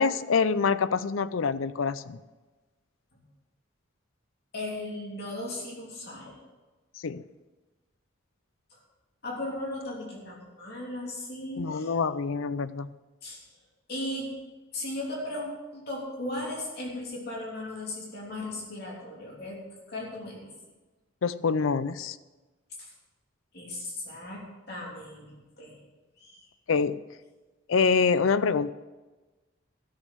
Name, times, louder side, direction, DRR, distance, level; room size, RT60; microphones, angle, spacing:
voice 1, 0.0-2.2 7.0-7.2 11.6-12.9 21.2-22.2 26.7-27.0 27.7-28.7, left 5 dB, 80° left, 15 dB, 0.5 m, -25 dB
voice 2, 4.5-6.4 8.7-8.8 9.2-11.9 13.2-13.4 13.9-14.3 14.7-19.6 19.9-20.5 22.8-22.9 23.5-25.8 26.2-26.4, left 1 dB, 50° left, -3 dB, 3.3 m, -37 dB
13.0 x 7.4 x 7.9 m, 1.2 s
head